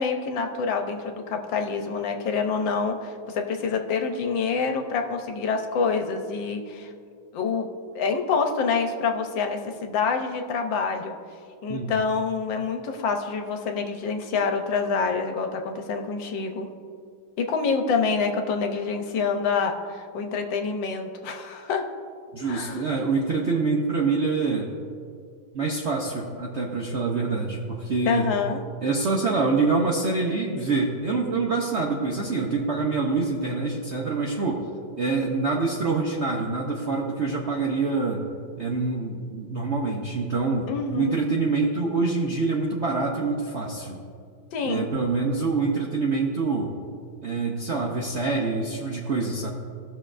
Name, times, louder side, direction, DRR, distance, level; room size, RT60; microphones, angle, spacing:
voice 1, 0.0-6.9 7.3-7.7 7.9-11.1 11.6-16.7 17.4-21.9 22.5-22.8 28.1-28.6 40.7-41.2 44.5-44.9, left 5 dB, 75° left, 5 dB, 1.4 m, -27 dB
voice 2, 22.3-24.7 25.5-28.3 28.8-34.6 35.0-38.2 38.6-44.0 44.6-46.7 47.2-49.5, right 3 dB, 65° right, -1 dB, 0.7 m, -26 dB
18.0 x 6.3 x 2.5 m, 2.3 s
omnidirectional pair, 2.1 m